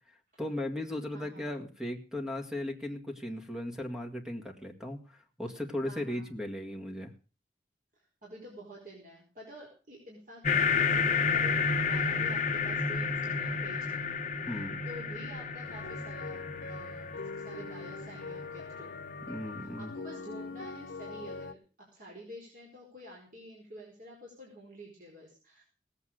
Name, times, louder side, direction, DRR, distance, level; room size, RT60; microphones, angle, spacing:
voice 1, 0.1-7.1 14.5-14.8 19.3-19.9, left 1 dB, 5° right, 4 dB, 2.0 m, -37 dB
voice 2, 5.9-6.3 8.0-16.4 16.6-17.1 17.3-18.9 19.6-21.6 21.9-25.6, right 1 dB, 45° right, -3 dB, 4.6 m, -49 dB
sound 1, 10.4-19.4, left 5 dB, 40° left, 1.2 m, -31 dB
sound 2, 15.6-21.5, left 4 dB, 65° left, 0.9 m, -42 dB
18.0 x 8.4 x 6.5 m, 0.37 s
head